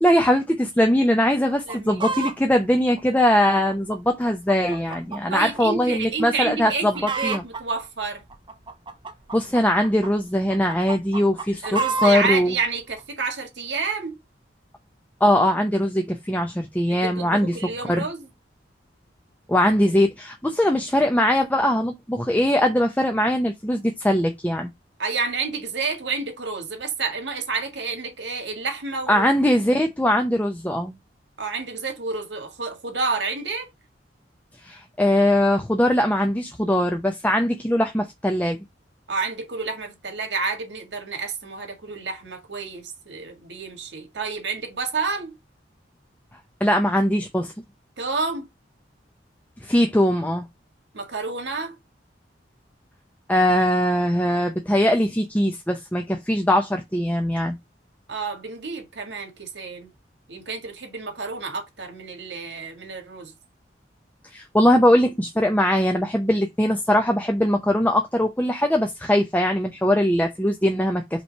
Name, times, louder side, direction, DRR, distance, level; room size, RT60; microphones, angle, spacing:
voice 1, 0.0-7.4 9.3-12.5 15.2-17.5 17.9-18.0 19.5-24.7 29.1-31.0 34.6-38.6 46.6-47.5 49.6-50.5 53.3-57.6 64.3-71.2, left 1 dB, 10° left, 0.7 m, -21 dB
Chicken rooster, 1.5-2.4 3.0-5.2 5.5-5.6 6.2-6.5 6.7-7.6 8.3-10.1 10.5-12.3 13.0-13.1, right 4 dB, 25° right, 0.9 m, -29 dB
voice 2, 1.7-2.0 5.3-8.2 11.6-14.2 16.9-18.3 25.0-29.3 31.4-33.7 39.1-45.4 48.0-48.5 50.9-51.8 58.1-59.9 60.3-63.3, right 4 dB, 75° right, 2.0 m, -29 dB
5.6 x 3.2 x 5.4 m
head